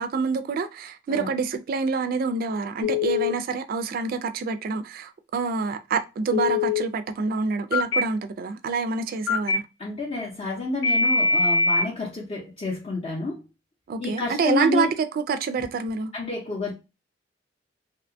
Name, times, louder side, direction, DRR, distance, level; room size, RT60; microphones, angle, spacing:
voice 1, 0.0-9.6 13.9-16.1, right 4 dB, 50° right, 0.3 m, -27 dB
Telephone, 2.8-3.3 6.3-6.8 7.7-8.0 9.3-9.6 10.8-11.9, left 3 dB, 90° left, 0.4 m, -22 dB
voice 2, 9.8-13.4 14.0-14.9 16.1-16.7, left 3 dB, 30° left, 0.6 m, -29 dB
2.7 x 2.2 x 2.5 m
head